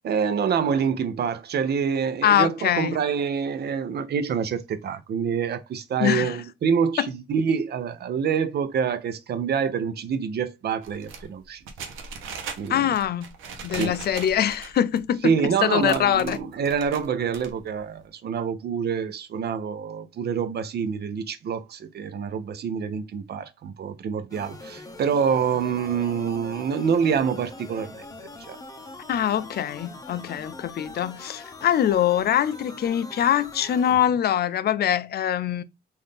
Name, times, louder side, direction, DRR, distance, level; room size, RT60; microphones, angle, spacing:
voice 1, 0.0-11.6 12.6-12.9 13.7-13.9 15.2-28.1 28.4-28.6, right 6 dB, 55° right, 0.7 m, -26 dB
voice 2, 2.2-3.0 6.0-6.4 7.0-7.1 12.7-13.3 13.6-15.3 15.6-16.4 29.1-35.6, left 10 dB, 55° left, 0.5 m, -23 dB
sound 1, 10.8-15.0 15.4-15.5 15.8-17.1 17.3-17.8, right 5 dB, 90° right, 0.9 m, -39 dB
sound 2, 24.3-34.0, left 2 dB, 15° left, 0.7 m, -42 dB
3.8 x 2.6 x 3.3 m
cardioid pair, 90°, 20 cm